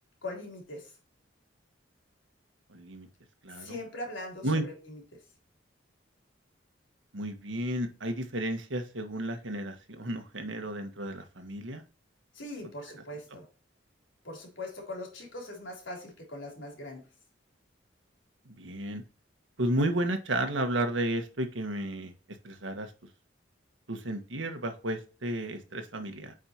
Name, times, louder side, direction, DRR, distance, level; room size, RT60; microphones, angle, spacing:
voice 1, 0.2-0.9 3.5-5.0 12.3-13.5 14.2-17.1, left 1 dB, 80° left, 0 dB, 3.6 m, -41 dB
voice 2, 2.7-3.1 3.4-3.8 4.4-4.7 7.1-11.8 18.4-19.0 19.6-22.1 22.4-22.9 23.9-26.3, right 1 dB, 85° right, 6 dB, 1.5 m, -32 dB
8.9 x 5.0 x 3.0 m, 0.36 s
head